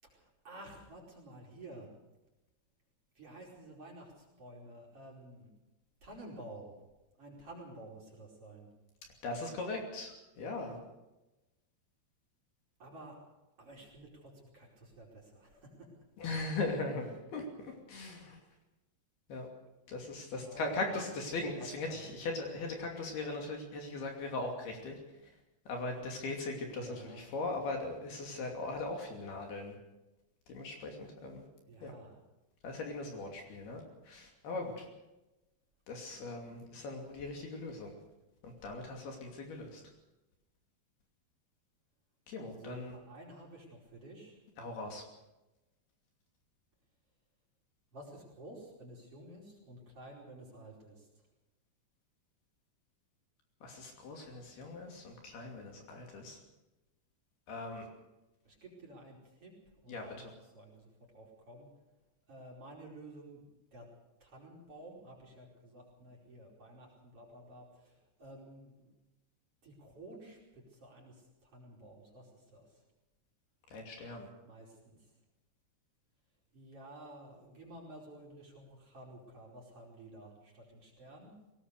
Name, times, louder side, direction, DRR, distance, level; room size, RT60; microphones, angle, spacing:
voice 1, 0.0-1.9 3.2-5.5 6.0-6.8 7.2-8.7 12.8-13.2 13.6-15.9 20.3-20.6 20.9-21.1 21.4-22.1 26.7-27.3 31.6-32.2 42.6-44.4 47.9-51.1 58.5-59.5 59.8-61.7 62.3-63.4 63.7-63.9 64.2-68.9 69.6-72.8 74.4-75.0 76.5-81.3, right 1 dB, 30° right, -2 dB, 5.5 m, -52 dB
voice 2, 9.2-10.8 16.2-18.4 19.3-19.5 19.9-25.0 25.7-29.7 30.5-31.5 31.8-31.9 32.6-34.9 35.9-37.9 38.4-39.8 42.3-42.9 44.6-45.0 53.6-56.4 57.5-57.9 59.9-60.3 73.7-74.3, left 2 dB, 60° left, 2 dB, 4.5 m, -39 dB
22.0 x 18.5 x 6.7 m, 1.0 s
omnidirectional pair, 5.3 m